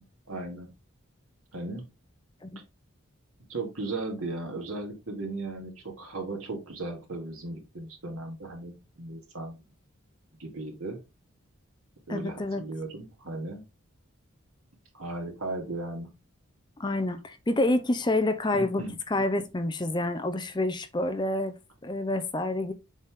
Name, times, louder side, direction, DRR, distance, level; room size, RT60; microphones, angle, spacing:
voice 1, 0.3-0.7 1.5-1.9 3.5-9.6 10.4-11.0 12.1-13.6 14.9-16.1 18.5-19.0, right 2 dB, 80° right, 2.3 m, -36 dB
voice 2, 12.1-12.6 16.8-18.8 19.1-21.5 21.8-22.7, left 2 dB, 20° left, 0.6 m, -28 dB
7.1 x 4.1 x 3.6 m
head